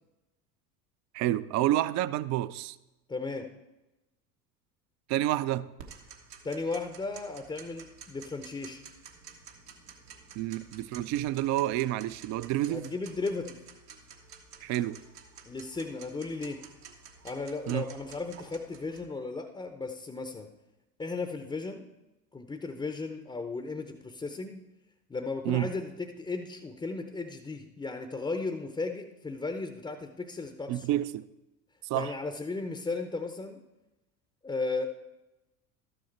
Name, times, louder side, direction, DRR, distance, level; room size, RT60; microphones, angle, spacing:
voice 1, 1.1-2.8 5.1-5.7 10.4-12.9 14.6-15.0 17.7-17.8 25.5-25.7 30.7-31.3 31.9-32.1, right 14 dB, 40° right, 0.4 m, -29 dB
voice 2, 3.1-3.5 6.4-8.8 12.7-13.6 15.4-16.6 17.2-20.5 21.0-21.8 22.3-24.6 25.1-31.0 31.9-33.6 34.4-34.9, left 3 dB, 10° left, 0.6 m, -35 dB
Tick-tock, 5.8-19.0, right 6 dB, 75° right, 1.3 m, -51 dB
12.5 x 6.7 x 4.4 m
figure-of-eight pair, 70°, 48 cm